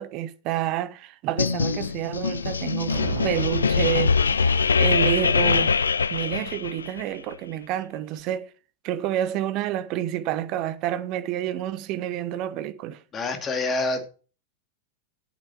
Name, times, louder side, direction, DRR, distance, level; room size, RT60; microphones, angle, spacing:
voice 1, 0.0-5.7 6.1-8.5 8.8-13.0, right 12 dB, 40° right, 1.0 m, -29 dB
sound 1, 1.4-7.0, left 5 dB, 75° left, 0.4 m, -23 dB
sound 2, 2.5-5.0, right 7 dB, 60° right, 1.2 m, -36 dB
voice 2, 13.1-14.1, left 3 dB, 25° left, 2.2 m, -26 dB
10.5 x 8.6 x 4.4 m
figure-of-eight pair, 90°, 0 cm